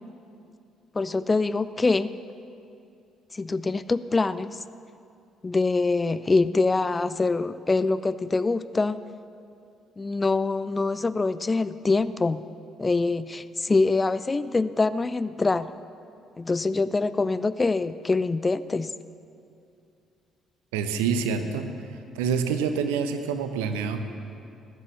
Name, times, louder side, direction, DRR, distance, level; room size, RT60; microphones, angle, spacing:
voice 1, 0.9-2.1 3.3-4.6 5.4-9.0 10.0-12.4 12.8-15.7 16.4-18.9, left 3 dB, 25° left, 15 dB, 0.4 m, -24 dB
voice 2, 20.7-21.7 22.1-24.0, right 6 dB, 70° right, 8 dB, 0.8 m, -26 dB
19.0 x 8.4 x 7.0 m, 2.5 s
figure-of-eight pair, 45°, 0 cm